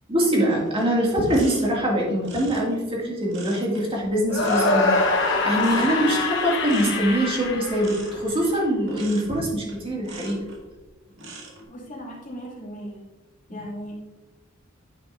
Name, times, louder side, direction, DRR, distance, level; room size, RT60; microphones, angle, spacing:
voice 1, 0.1-10.4 13.5-13.6, right 1 dB, 25° right, -3 dB, 2.3 m, -23 dB
sound 1, 0.6-10.7 11.1-11.6, right 2 dB, 65° right, 1.9 m, -43 dB
sound 2, 4.3-8.5, left 3 dB, 65° left, 1.1 m, -24 dB
voice 2, 11.7-13.0 13.5-14.0, equal, 40° left, -4 dB, 2.5 m, -37 dB
10.0 x 8.0 x 2.6 m, 1.1 s
head